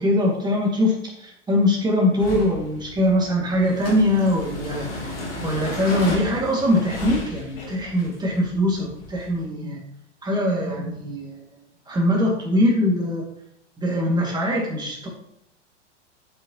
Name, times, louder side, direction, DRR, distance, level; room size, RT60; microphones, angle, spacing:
voice 1, 0.0-5.1 5.4-9.8 10.2-11.4 11.9-13.2 13.8-15.1, left 1 dB, 10° right, -2 dB, 2.5 m, -22 dB
sound 1, 2.2-9.4, left 1 dB, 55° left, 2.5 m, -35 dB
8.5 x 7.3 x 3.2 m, 0.75 s
figure-of-eight pair, 95°, 36 cm